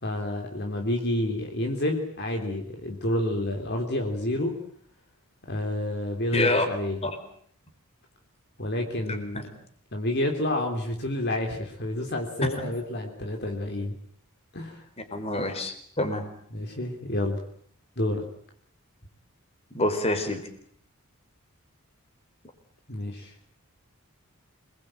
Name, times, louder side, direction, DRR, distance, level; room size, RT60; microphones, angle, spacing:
voice 1, 0.0-4.6 5.5-7.0 8.6-9.4 9.9-13.9 14.5-14.8 16.5-17.4 18.0-18.2 22.9-23.3, left 1 dB, 50° left, 3 dB, 3.3 m, -29 dB
voice 2, 6.3-6.7 7.0-7.1 9.1-9.4 12.6-12.7 15.1-16.2 19.7-20.4, left 2 dB, 25° left, 7 dB, 4.3 m, -27 dB
27.0 x 21.5 x 8.9 m, 0.64 s
head